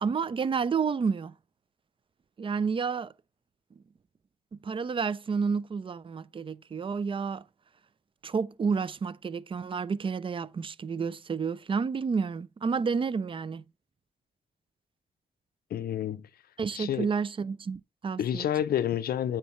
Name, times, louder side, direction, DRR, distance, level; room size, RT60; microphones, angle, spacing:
voice 1, 0.0-1.3 2.4-3.1 4.5-7.4 8.2-13.6 16.6-18.5, right 5 dB, 35° right, 0.4 m, -30 dB
voice 2, 15.7-16.3 16.7-17.1 18.2-19.4, left 10 dB, 80° left, 0.5 m, -29 dB
8.4 x 4.5 x 3.1 m
cardioid pair, 60°, 16 cm